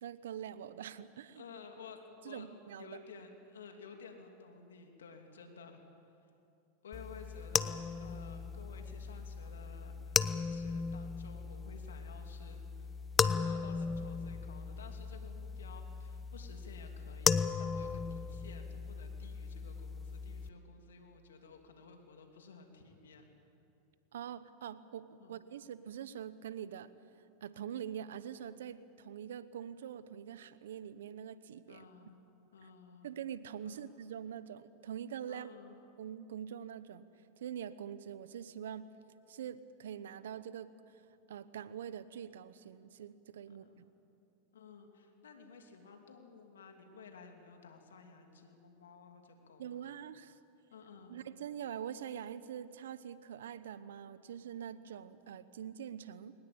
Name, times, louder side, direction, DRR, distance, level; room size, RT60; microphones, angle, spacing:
voice 1, 0.0-1.4 2.2-3.0 24.1-26.9 27.4-31.9 32.6-32.7 33.0-35.5 36.0-37.1 37.4-38.9 39.3-40.7 41.3-43.9 49.6-50.4 51.1-56.3, right 9 dB, 80° right, 15 dB, 1.0 m, -44 dB
voice 2, 1.4-2.5 2.8-5.8 6.2-6.3 6.8-12.9 13.2-23.2 25.2-25.4 31.7-32.2 32.5-33.2 33.6-33.9 35.3-35.8 43.5-43.8 44.5-49.9 50.7-51.1, left 5 dB, 90° left, 4 dB, 2.8 m, -54 dB
sound 1, 6.9-20.5, left 5 dB, 20° left, 0.8 m, -36 dB
21.5 x 19.5 x 8.8 m, 2.7 s
hypercardioid pair, 110°, 0 cm